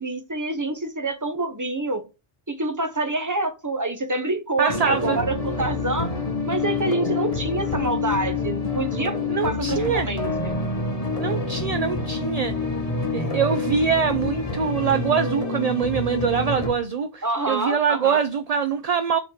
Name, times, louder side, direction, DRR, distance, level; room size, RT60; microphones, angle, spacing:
voice 1, 0.0-2.0 2.5-6.1 6.5-9.2 9.4-10.5 17.2-18.2, right 2 dB, 15° right, 1.0 m, -27 dB
voice 2, 4.6-5.2 9.3-10.1 11.2-12.5 13.1-19.2, right 6 dB, 45° right, 0.5 m, -24 dB
sound 1, 4.7-16.7, left 3 dB, 30° left, 1.8 m, -27 dB
7.8 x 4.2 x 6.6 m
omnidirectional pair, 1.2 m